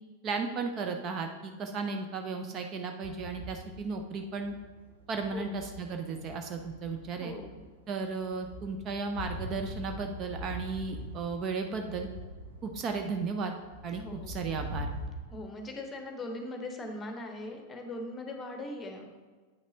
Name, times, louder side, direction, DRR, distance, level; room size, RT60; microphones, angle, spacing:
voice 1, 0.2-4.5 5.1-7.3 7.9-12.1 12.6-13.6 13.8-14.9, right 4 dB, 30° right, 5 dB, 0.6 m, -35 dB
sound 1, 3.0-15.1, equal, 85° right, 1.2 m, -43 dB
voice 2, 7.1-7.6 14.0-14.4 15.3-19.1, left 2 dB, 20° left, 4 dB, 1.0 m, -40 dB
8.8 x 5.8 x 2.8 m, 1.4 s
figure-of-eight pair, 90°, 0 cm